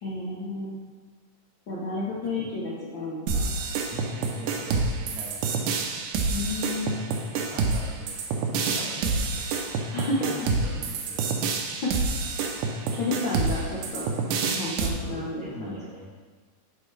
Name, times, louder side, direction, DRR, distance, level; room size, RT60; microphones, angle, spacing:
voice 1, 0.0-0.8 1.7-3.5 6.3-7.0 9.9-10.3 11.8-11.9 12.9-14.1 14.4-15.7, left 2 dB, 70° left, -6 dB, 1.1 m, -31 dB
sound 1, 3.3-14.9, right 4 dB, 85° right, 2.4 m, -27 dB
voice 2, 3.9-5.7 7.4-9.4 9.9-11.3 14.9-16.1, right 1 dB, 55° right, -5 dB, 1.0 m, -41 dB
11.0 x 4.6 x 3.3 m, 1.5 s
omnidirectional pair, 3.8 m